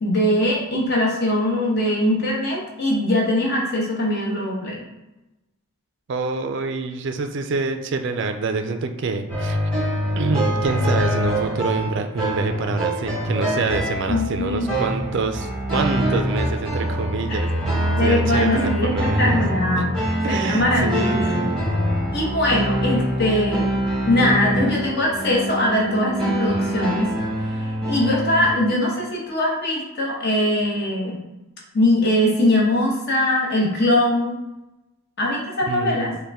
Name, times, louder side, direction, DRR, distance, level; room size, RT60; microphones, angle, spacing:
voice 1, 0.0-4.8 14.1-14.9 17.5-17.6 18.0-19.9 20.3-21.5 22.1-23.6 24.1-27.1 27.4-31.2 31.7-34.4 35.2-36.1, left 1 dB, 50° left, -3 dB, 1.0 m, -21 dB
voice 2, 6.1-9.6 10.2-19.4 19.8-19.9 20.2-21.7 35.7-36.2, right 4 dB, 55° right, 6 dB, 0.4 m, -26 dB
sound 1, 9.3-28.5, equal, 5° left, 1.2 m, -24 dB
5.2 x 2.2 x 3.5 m, 1.0 s
head